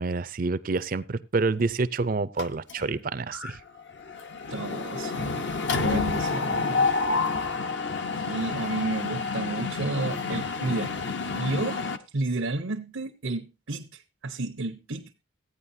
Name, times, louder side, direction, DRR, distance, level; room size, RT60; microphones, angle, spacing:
voice 1, 0.0-3.6, right 3 dB, 45° right, 0.5 m, -28 dB
Mechanisms, 2.4-3.0 3.3-3.5 3.8-12.0, left 4 dB, 60° left, 0.8 m, -29 dB
voice 2, 4.5-5.5 5.7-6.9 8.2-11.0 11.3-11.9 12.1-15.2, right 2 dB, 90° right, 0.9 m, -32 dB
15.5 x 9.5 x 2.7 m
head